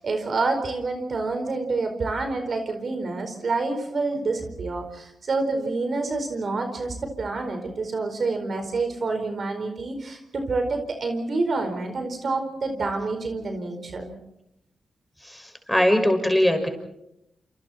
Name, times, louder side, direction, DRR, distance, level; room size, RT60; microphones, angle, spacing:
voice 1, 0.0-14.1, right 3 dB, 60° right, 5 dB, 4.6 m, -28 dB
voice 2, 15.7-16.7, left 1 dB, 5° left, 5 dB, 5.9 m, -20 dB
28.5 x 28.0 x 4.4 m, 0.80 s
cardioid pair, 60°, 0 cm